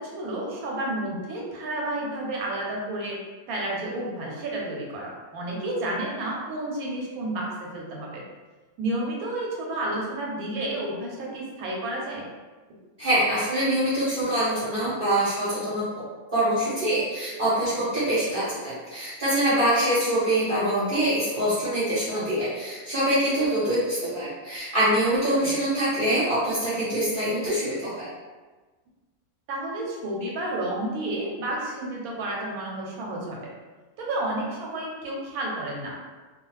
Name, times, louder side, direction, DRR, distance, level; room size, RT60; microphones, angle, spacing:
voice 1, 0.0-3.2 3.5-8.2 8.8-12.3 25.4-25.5 29.5-33.5 34.0-36.0, right 1 dB, 80° right, -2 dB, 1.1 m, -31 dB
voice 2, 13.0-16.0 16.3-28.1, right 1 dB, 40° right, -12 dB, 1.0 m, -24 dB
2.3 x 2.3 x 3.0 m, 1.3 s
omnidirectional pair, 1.5 m